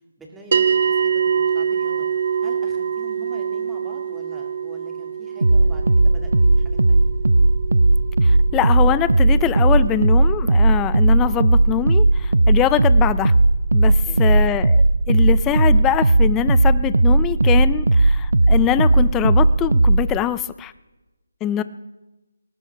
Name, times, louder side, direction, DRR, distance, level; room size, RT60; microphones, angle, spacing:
voice 1, 0.2-2.1 2.4-7.1 14.1-14.5 21.6-21.7, right 2 dB, 5° right, 0 dB, 2.3 m, -43 dB
sound 1, 0.5-11.1, right 7 dB, 50° right, 0.8 m, -26 dB
sound 2, 5.4-20.2, right 2 dB, 90° right, 0.5 m, -16 dB
voice 2, 8.2-13.4 13.7-14.8 15.1-20.7 21.4-21.6, left 12 dB, 15° left, 15 dB, 0.5 m, -23 dB
19.5 x 19.0 x 3.5 m, 1.1 s
figure-of-eight pair, 155°, 0 cm